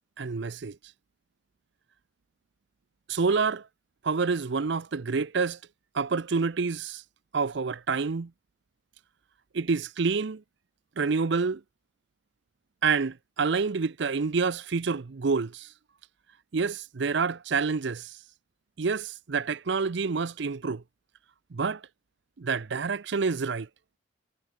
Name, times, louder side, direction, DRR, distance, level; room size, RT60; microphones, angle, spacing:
voice 1, 0.2-0.8 3.1-3.7 4.0-5.6 5.9-7.0 7.3-8.3 9.5-10.4 11.0-11.6 12.8-15.7 16.5-18.2 18.8-20.8 21.5-21.8 22.4-23.7, right 4 dB, 60° right, 0.5 m, -28 dB
head